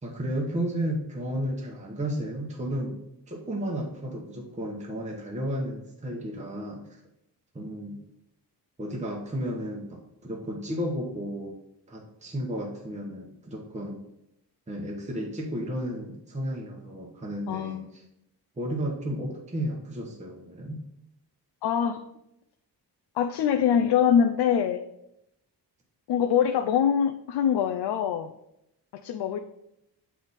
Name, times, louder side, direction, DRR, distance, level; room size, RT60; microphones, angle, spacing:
voice 1, 0.0-3.0 3.3-7.0 7.5-8.0 8.8-11.6 11.9-14.0 14.7-18.0 18.6-20.8, equal, 15° right, -1 dB, 1.0 m, -33 dB
voice 2, 17.5-18.0 21.6-22.0 23.1-24.8 26.1-28.3 29.0-29.4, left 8 dB, 75° left, 5 dB, 0.5 m, -24 dB
7.7 x 3.5 x 4.0 m, 0.82 s
cardioid pair, 110°, 41 cm